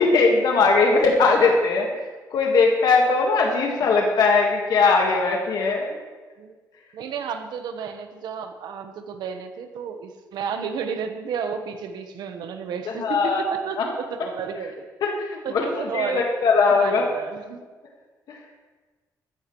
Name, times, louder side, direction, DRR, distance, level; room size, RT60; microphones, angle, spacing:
voice 1, 0.0-2.0 2.3-6.0 12.8-13.5 13.8-13.9 15.0-17.1 18.3-18.4, left 4 dB, 75° left, 1 dB, 1.7 m, -20 dB
voice 2, 6.9-14.9 15.4-16.3 16.7-17.6, right 6 dB, 85° right, 7 dB, 1.1 m, -32 dB
15.0 x 13.5 x 3.1 m, 1.3 s
cardioid pair, 130°, 7 cm